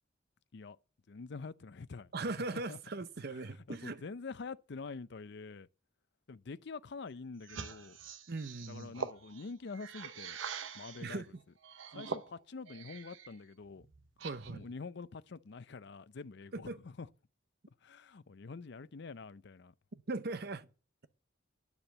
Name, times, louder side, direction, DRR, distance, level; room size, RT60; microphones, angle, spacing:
voice 1, 1.1-2.1 2.7-2.8 3.7-5.7 6.3-8.0 8.7-10.4 10.7-11.2 11.9-13.9 14.5-17.1 17.8-19.7, left 4 dB, 60° left, 0.5 m, -46 dB
voice 2, 2.1-4.0 8.3-9.0 11.0-11.3 14.2-14.6 16.5-16.8 19.9-20.7, right 3 dB, 55° right, 0.7 m, -39 dB
sound 1, 7.4-11.1 11.6-13.3 13.7-14.7, right 5 dB, 85° right, 0.9 m, -44 dB
9.9 x 7.1 x 7.9 m
head